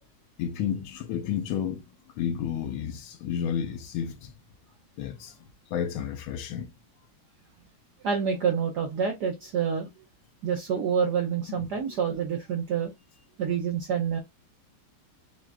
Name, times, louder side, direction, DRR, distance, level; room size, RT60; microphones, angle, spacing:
voice 1, 0.4-1.8 2.2-4.3 5.0-5.3 5.7-6.7 11.5-11.6, left 8 dB, 75° left, 1.3 m, -31 dB
voice 2, 8.0-9.9 10.4-12.9 13.4-14.2, right 7 dB, 75° right, 0.9 m, -27 dB
5.9 x 2.3 x 2.4 m
omnidirectional pair, 2.4 m